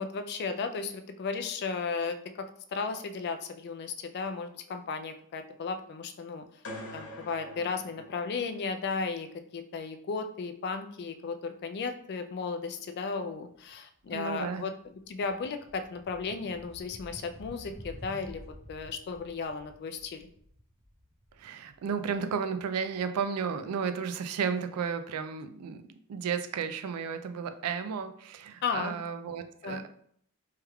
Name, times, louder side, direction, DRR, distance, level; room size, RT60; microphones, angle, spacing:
voice 1, 0.0-6.4 6.9-9.3 9.5-14.7 15.1-18.4 18.7-20.3 28.6-28.9 29.6-29.8, left 4 dB, 50° left, 7 dB, 0.3 m, -35 dB
sound 1, 6.6-8.8, left 1 dB, 65° left, 1.0 m, -44 dB
sound 2, 13.5-13.7 14.1-22.9, equal, 50° right, 1.1 m, -50 dB
voice 2, 14.1-14.6 21.4-25.8 26.1-29.9, right 6 dB, 85° right, 10 dB, 0.3 m, -33 dB
3.2 x 2.2 x 3.4 m, 0.64 s
head